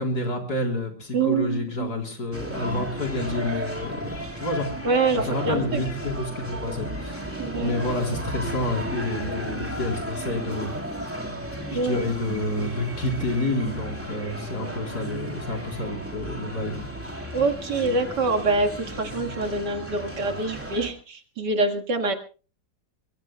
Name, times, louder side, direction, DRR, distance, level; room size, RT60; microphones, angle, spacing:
voice 1, 0.0-4.7 5.1-11.2 11.7-16.7, left 2 dB, 60° left, 1 dB, 4.4 m, -29 dB
voice 2, 1.1-1.9 4.8-5.8 7.4-7.8 11.7-12.1 17.3-18.7 19.0-22.1, right 3 dB, 70° right, 5 dB, 2.4 m, -25 dB
sound 1, 2.3-20.9, equal, 5° right, 2.9 m, -34 dB
24.0 x 23.0 x 2.3 m, 0.36 s
omnidirectional pair, 1.9 m